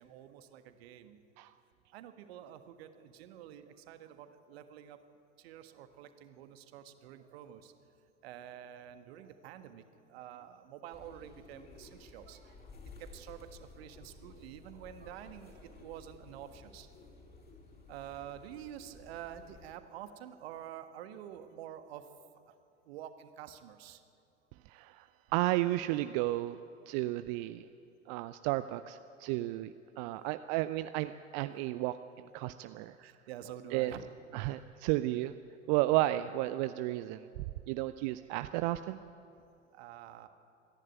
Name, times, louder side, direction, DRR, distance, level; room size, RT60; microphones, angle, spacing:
voice 1, 0.0-1.2 1.9-5.0 5.4-7.7 8.2-12.6 13.0-16.9 17.9-22.1 22.5-22.6 22.8-24.0 33.0-34.1 39.7-40.3, right 10 dB, 55° right, 9 dB, 1.5 m, -48 dB
sound 1, 10.9-19.7, left 3 dB, 25° left, 4.5 m, -54 dB
voice 2, 24.7-26.6 26.9-27.7 28.1-33.0 33.7-33.9 34.3-35.3 35.7-39.0, right 16 dB, 40° right, 12 dB, 0.5 m, -33 dB
26.0 x 11.0 x 9.3 m, 2.6 s
figure-of-eight pair, 85°, 37 cm